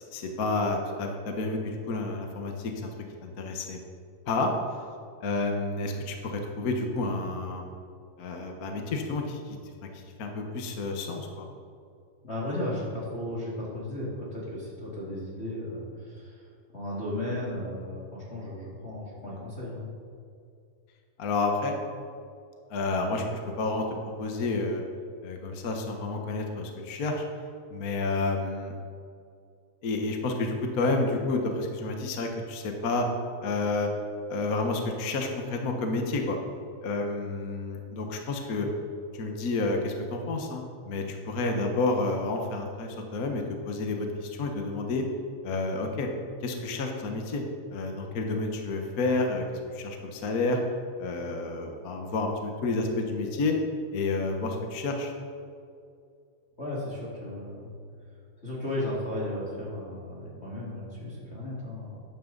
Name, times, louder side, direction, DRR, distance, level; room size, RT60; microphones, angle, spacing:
voice 1, 0.0-2.9 3.2-3.8 4.3-4.5 5.2-7.6 8.2-9.6 9.8-11.5 21.2-21.7 22.7-24.8 25.2-27.2 27.7-28.7 29.8-33.1 33.4-33.9 34.3-36.4 36.8-38.7 39.1-45.0 45.4-46.1 46.4-47.4 47.7-50.6 51.0-53.6 53.9-55.1, left 3 dB, 60° left, 3 dB, 0.9 m, -30 dB
voice 2, 12.2-19.9 56.6-57.6 58.1-62.0, left 1 dB, 25° left, -6 dB, 2.2 m, -35 dB
13.0 x 11.0 x 4.0 m, 2.3 s
omnidirectional pair, 3.4 m